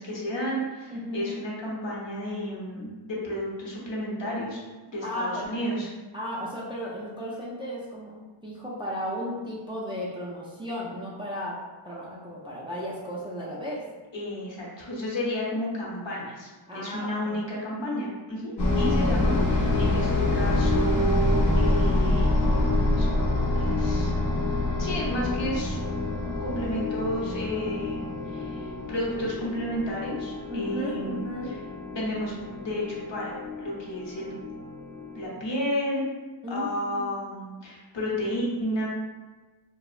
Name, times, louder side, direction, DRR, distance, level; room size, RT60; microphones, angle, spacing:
voice 1, 0.0-4.6 4.9-5.9 14.1-22.3 22.9-24.1 24.8-25.8 26.4-28.0 28.3-31.6 31.9-34.3 35.1-36.1 36.5-38.9, equal, 65° left, -5 dB, 0.8 m, -32 dB
voice 2, 0.9-1.4 5.0-5.8 6.1-8.1 8.4-11.6 11.8-13.8 16.7-17.4 30.5-31.5 36.4-37.1, equal, 10° right, -6 dB, 0.3 m, -34 dB
sound 1, 18.6-35.3, left 2 dB, 40° left, 0.6 m, -26 dB
2.8 x 2.0 x 2.4 m, 1.3 s
wide cardioid pair, 95°, 48 cm